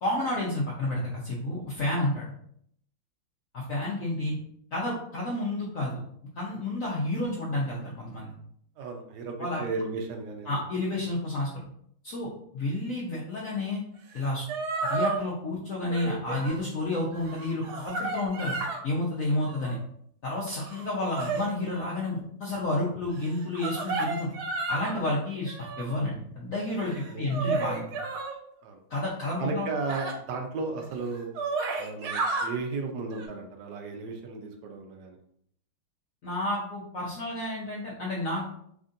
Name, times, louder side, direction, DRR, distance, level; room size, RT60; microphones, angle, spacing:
voice 1, 0.0-2.2 3.5-4.3 4.7-6.0 6.4-8.3 9.4-9.6 10.5-11.6 12.0-13.8 14.1-14.4 14.9-18.5 18.8-19.8 20.2-24.3 24.7-27.9 28.9-29.7 36.2-38.4, left 1 dB, 70° left, -4 dB, 0.8 m, -30 dB
voice 2, 8.8-10.9 26.9-27.4 28.6-28.8 29.4-31.3 31.8-35.2, right 3 dB, 70° right, 3 dB, 1.0 m, -35 dB
sound 1, 14.1-14.2 14.5-15.2 15.9-16.6 17.1-18.8 19.3-19.8 20.5-21.8 23.3-25.0 25.5-26.0 26.7-28.4 29.9-30.1 30.8-30.9 31.2-32.5 33.1-33.3, right 3 dB, 90° right, 1.5 m, -32 dB
3.7 x 3.5 x 2.6 m, 0.68 s
omnidirectional pair, 2.3 m